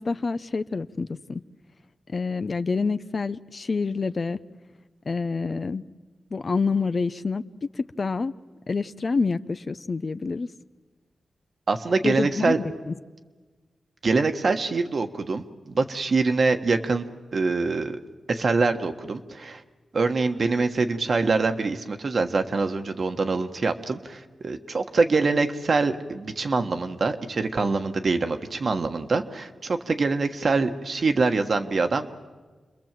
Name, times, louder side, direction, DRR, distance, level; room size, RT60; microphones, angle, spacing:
voice 1, 0.0-1.4 2.1-4.4 5.0-5.8 6.3-7.5 7.7-8.3 8.7-10.5 12.0-12.9, left 4 dB, 50° left, 12 dB, 0.7 m, -27 dB
voice 2, 11.7-12.6 14.0-17.1 17.3-18.0 18.3-19.6 19.9-32.1, right 3 dB, 60° right, 6 dB, 1.4 m, -24 dB
28.5 x 21.5 x 7.6 m, 1.4 s
cardioid pair, 55°, 0 cm